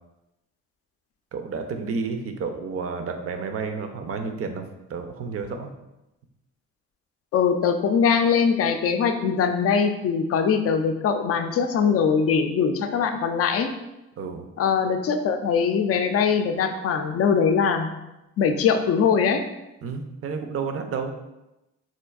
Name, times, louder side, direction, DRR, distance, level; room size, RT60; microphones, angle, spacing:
voice 1, 1.3-4.6 4.9-5.7 14.2-14.5 19.8-21.1, right 5 dB, 50° right, 6 dB, 0.5 m, -31 dB
voice 2, 7.3-13.7 14.6-17.9 18.4-19.4, left 6 dB, 50° left, 7 dB, 0.4 m, -22 dB
4.3 x 2.5 x 2.3 m, 0.94 s
cardioid pair, 90°, 30 cm